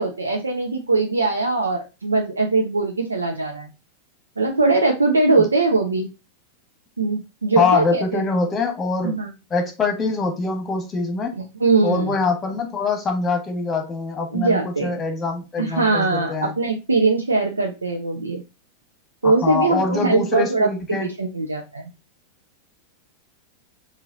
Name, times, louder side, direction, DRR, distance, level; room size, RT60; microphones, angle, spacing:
voice 1, 0.0-3.7 4.4-6.1 7.0-8.2 9.0-9.3 11.6-12.1 14.3-14.9 15.6-18.4 19.2-20.7 21.0-21.9, right 3 dB, 75° right, 1 dB, 0.7 m, -21 dB
voice 2, 7.6-9.2 9.5-11.3 11.8-16.5 19.2-21.1, left 4 dB, 20° left, 5 dB, 1.3 m, -24 dB
4.7 x 2.7 x 3.8 m, 0.27 s
figure-of-eight pair, 90°, 0 cm